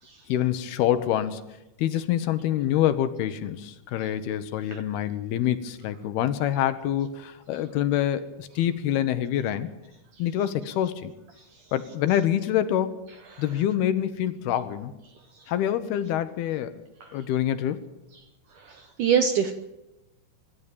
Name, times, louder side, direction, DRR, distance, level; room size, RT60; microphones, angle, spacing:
voice 1, 0.3-9.7 10.2-11.1 11.7-13.0 13.4-14.9 15.5-16.8 17.1-17.8, left 11 dB, 75° left, 12 dB, 2.9 m, -26 dB
voice 2, 18.6-19.5, right 7 dB, 75° right, 7 dB, 1.9 m, -25 dB
25.0 x 12.0 x 9.0 m, 0.97 s
omnidirectional pair, 4.8 m